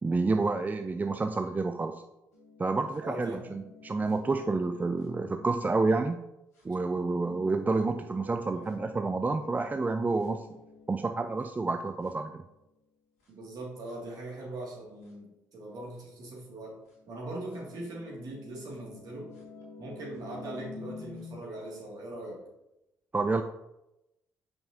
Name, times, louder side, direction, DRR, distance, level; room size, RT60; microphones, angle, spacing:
voice 1, 0.0-2.0 2.6-6.2 6.6-10.5 10.9-12.4 23.1-23.4, right 3 dB, 20° right, 7 dB, 0.4 m, -29 dB
sound 1, 2.3-6.2 6.5-12.7 13.2-13.3 13.8-13.9 15.0-15.1 15.9-16.0 16.8-21.4, left 4 dB, 85° left, 1.3 m, -50 dB
voice 2, 3.0-3.4 13.3-16.8 17.1-19.3 19.8-22.4, right 1 dB, 55° right, -3 dB, 2.4 m, -40 dB
6.7 x 5.5 x 2.8 m, 0.91 s
hypercardioid pair, 45°, 8 cm